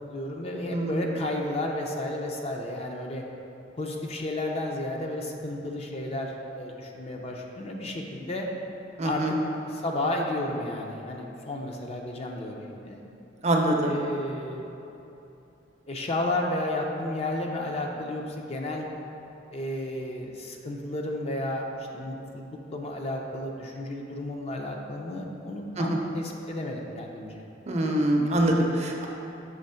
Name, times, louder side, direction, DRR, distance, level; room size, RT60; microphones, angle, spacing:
voice 1, 0.1-3.2 3.8-8.5 9.0-9.2 9.6-13.0 13.8-14.7 15.9-18.9 19.5-21.6 21.9-27.4, left 1 dB, 30° left, 1 dB, 0.5 m, -32 dB
voice 2, 9.0-9.3 13.4-13.9 25.8-26.0 27.7-29.1, right 1 dB, 35° right, 1 dB, 0.6 m, -24 dB
6.4 x 3.0 x 5.6 m, 2.9 s
head